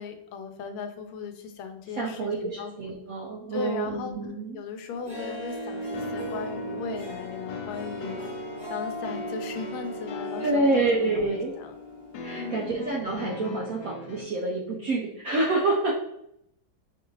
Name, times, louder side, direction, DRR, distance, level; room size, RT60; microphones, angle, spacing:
voice 1, 0.0-2.7 3.5-8.4 8.7-11.7 12.3-12.8, left 5 dB, 90° left, 6 dB, 1.5 m, -37 dB
voice 2, 2.0-4.6 10.4-11.5 12.2-16.0, right 2 dB, 75° right, -2 dB, 0.8 m, -27 dB
Harp, 4.9-12.4, equal, 25° right, 1.4 m, -38 dB
sound 1, 5.9-14.2, left 2 dB, 70° left, 1.1 m, -39 dB
5.2 x 2.5 x 3.0 m, 0.75 s
omnidirectional pair, 2.2 m